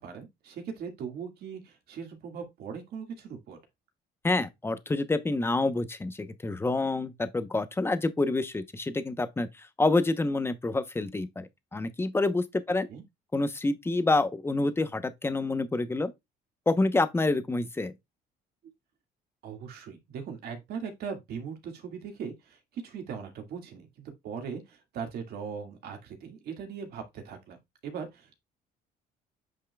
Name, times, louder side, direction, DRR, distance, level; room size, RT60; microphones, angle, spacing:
voice 1, 0.0-3.6 12.7-13.0 19.4-23.9 24.2-27.6 27.8-28.4, right 6 dB, 70° right, 2.1 m, -39 dB
voice 2, 4.2-12.9 13.3-16.1 16.7-17.9, left 2 dB, 15° left, 0.9 m, -27 dB
8.6 x 5.6 x 2.3 m
cardioid pair, 110°, 17 cm